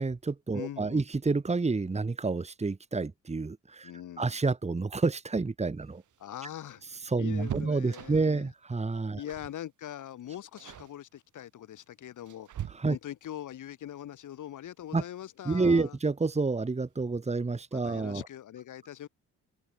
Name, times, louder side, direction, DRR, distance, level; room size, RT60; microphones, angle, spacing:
voice 1, 0.0-3.9 4.2-6.0 7.1-9.2 12.7-13.0 14.9-15.0 15.5-18.2, right 3 dB, 20° right, 2.2 m, -29 dB
voice 2, 0.5-1.0 3.8-4.4 6.2-6.8 7.2-8.5 9.2-12.5 12.8-16.0 17.7-19.1, left 11 dB, 75° left, 4.4 m, -42 dB
sound 1, 5.8-8.5 9.3-9.6 9.9-10.2 10.6-11.0 11.8-13.3 15.0-15.1 15.5-15.6 16.7-17.2 17.5-17.6 17.9-18.1, right 10 dB, 70° right, 5.7 m, -43 dB
open air
cardioid pair, 100°, 31 cm